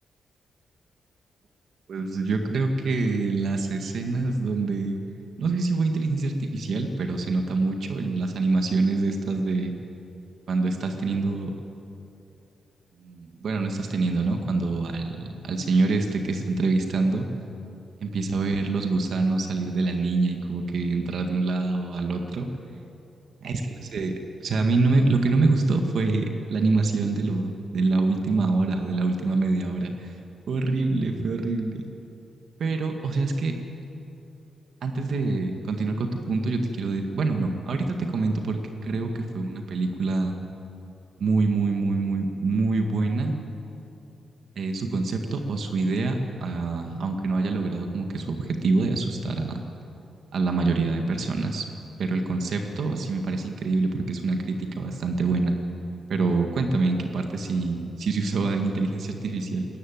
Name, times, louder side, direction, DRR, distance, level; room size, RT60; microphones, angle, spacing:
voice 1, 1.9-4.9 5.4-9.7 10.5-11.5 13.0-17.3 18.0-22.5 23.4-24.1 24.4-30.1 30.5-31.8 32.6-33.5 34.8-38.6 38.9-39.1 39.3-40.3 41.2-43.4 44.5-49.6 50.3-51.7 52.0-55.5 56.1-59.7, right 3 dB, 60° right, 4 dB, 1.7 m, -25 dB
20.0 x 14.5 x 9.5 m, 2.8 s
wide cardioid pair, 155°, 0 cm